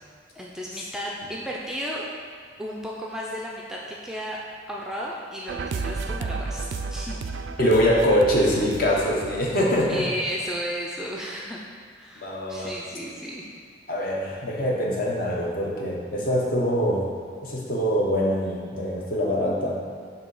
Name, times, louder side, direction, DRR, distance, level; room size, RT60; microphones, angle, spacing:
voice 1, 0.4-2.0 2.6-4.4 4.7-7.2 9.9-11.6 12.0-13.5, equal, 5° right, -3 dB, 0.4 m, -33 dB
sound 1, 5.5-10.5, right 4 dB, 85° right, 0.3 m, -33 dB
voice 2, 7.6-10.1 12.2-12.7 13.9-17.1 17.4-19.8, equal, 50° left, -3 dB, 1.0 m, -23 dB
6.9 x 2.8 x 5.4 m, 2.2 s
head